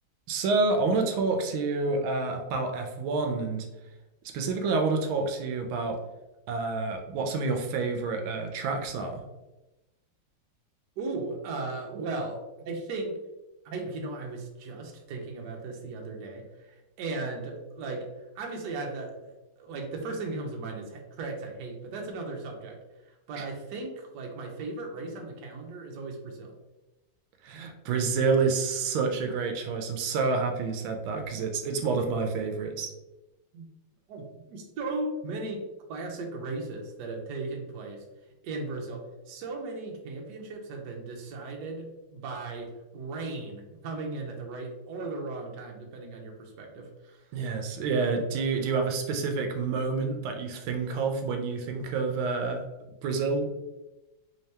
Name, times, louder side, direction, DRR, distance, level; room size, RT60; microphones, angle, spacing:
voice 1, 0.3-3.7 4.2-6.0 6.5-9.2 23.4-23.5 27.4-32.9 47.3-52.6 53.0-53.5, right 4 dB, 85° right, 4 dB, 1.4 m, -28 dB
voice 2, 11.0-13.2 13.6-18.1 18.3-19.3 19.6-22.8 23.3-26.5 31.1-31.2 33.5-33.6 34.1-38.0 38.4-47.2, right 3 dB, 70° right, 1 dB, 1.1 m, -37 dB
3.5 x 2.8 x 3.2 m, 1.0 s
omnidirectional pair, 2.2 m